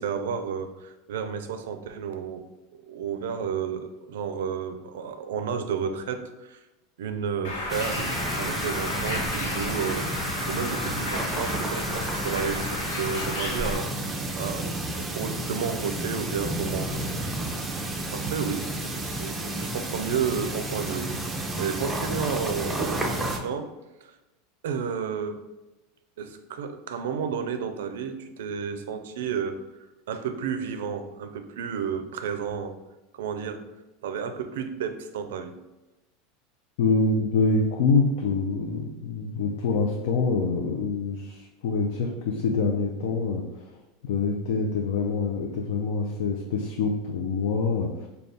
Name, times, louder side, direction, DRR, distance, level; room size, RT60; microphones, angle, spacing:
voice 1, 0.0-2.5 2.8-6.6 7.0-10.1 10.5-13.9 14.4-17.0 17.5-17.9 18.1-23.7 24.0-24.1 24.6-25.4 26.2-29.6 30.1-32.7 33.1-33.6 34.0-35.5, right 6 dB, 90° right, 8 dB, 0.4 m, -32 dB
Bird, 7.4-13.8, left 2 dB, 90° left, 0.9 m, -32 dB
sound 1, 7.7-23.4, right 1 dB, 10° right, 0.4 m, -31 dB
voice 2, 36.8-43.7 44.0-48.1, left 4 dB, 75° left, 1 dB, 0.4 m, -25 dB
3.4 x 2.2 x 3.9 m, 1.0 s
supercardioid pair, 140°, 0 cm